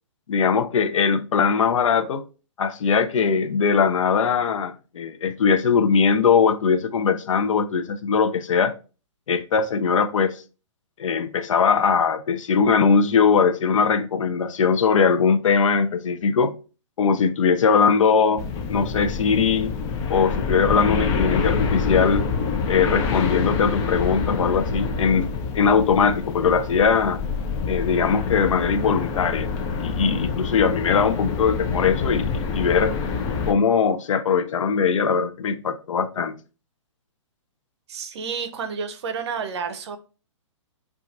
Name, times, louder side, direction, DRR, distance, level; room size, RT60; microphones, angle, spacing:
voice 1, 0.3-2.2 2.6-8.7 9.3-10.4 11.0-16.6 17.0-19.7 20.1-22.2 22.7-25.3 25.5-27.2 27.7-29.5 29.8-33.0 33.5-36.4, left 6 dB, 80° left, 0.5 m, -20 dB
sound 1, 18.4-33.5, left 5 dB, 20° left, 0.3 m, -26 dB
voice 2, 37.9-40.0, right 6 dB, 60° right, 0.7 m, -30 dB
4.0 x 2.4 x 2.5 m
hypercardioid pair, 145°, 16 cm